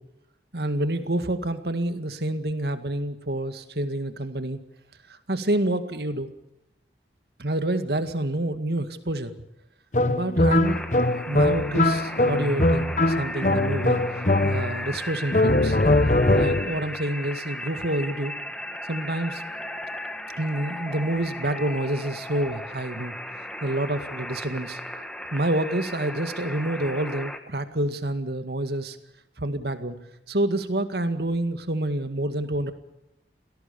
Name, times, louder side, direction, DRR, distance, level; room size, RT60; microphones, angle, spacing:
voice 1, 0.5-4.6 5.1-6.3 7.4-9.3 10.1-10.8 11.3-14.0 14.4-15.8 16.3-18.3 18.9-19.4 20.4-23.1 23.6-25.0 25.3-29.0 29.4-30.0 30.3-32.7, right 1 dB, 65° right, 10 dB, 2.1 m, -28 dB
sound 1, 9.9-14.9 15.3-16.8, left 2 dB, 45° left, 1.1 m, -22 dB
sound 2, 10.6-27.4, left 1 dB, 5° left, 1.7 m, -36 dB
27.0 x 17.5 x 7.0 m, 0.85 s
head